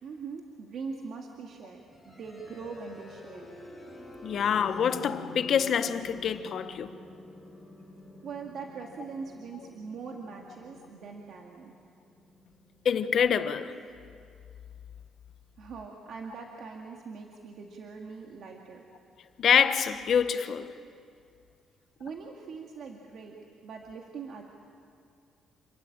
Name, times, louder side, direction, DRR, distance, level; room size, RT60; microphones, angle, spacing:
voice 1, 0.0-3.5 8.2-11.7 15.6-18.8 22.0-23.4 23.6-24.4, right 5 dB, 55° right, 2.2 m, -42 dB
sound 1, 1.9-13.8, left 1 dB, 5° right, 7.1 m, -48 dB
voice 2, 4.2-6.9 12.8-13.8 19.4-20.7, left 7 dB, 50° left, 1.2 m, -26 dB
28.5 x 23.0 x 8.8 m
cardioid pair, 140°, 0 cm